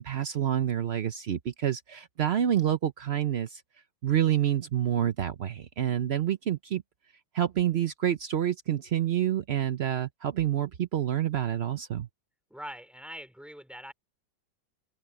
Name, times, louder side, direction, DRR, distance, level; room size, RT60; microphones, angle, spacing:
voice 1, 0.0-3.6 4.0-6.8 7.3-12.1, right 10 dB, 65° right, 0.6 m, -28 dB
voice 2, 12.5-13.9, equal, ahead, 3.0 m, -43 dB
omnidirectional pair, 2.1 m